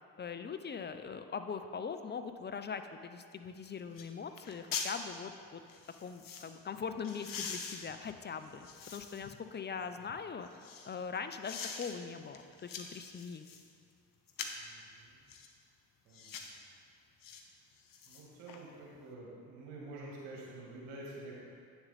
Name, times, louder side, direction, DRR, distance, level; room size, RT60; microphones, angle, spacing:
voice 1, 0.2-5.6 6.0-10.5 10.8-13.5, left 6 dB, 25° left, 9 dB, 0.5 m, -41 dB
sound 1, 3.4-3.5 4.0-4.1 4.4-5.0 5.7-6.5 7.0-9.3 9.8-10.9 11.4-12.0 12.3-13.7 14.3-14.7 15.3-15.5 16.1-16.6 17.2-17.4 17.8-18.6 19.0-19.1, left 6 dB, 45° left, 1.0 m, -43 dB
voice 2, 14.5-15.2 16.0-16.6 18.0-21.4, right 2 dB, 70° right, -4 dB, 1.9 m, -48 dB
8.8 x 6.8 x 4.1 m, 2.4 s
hypercardioid pair, 50°, 45 cm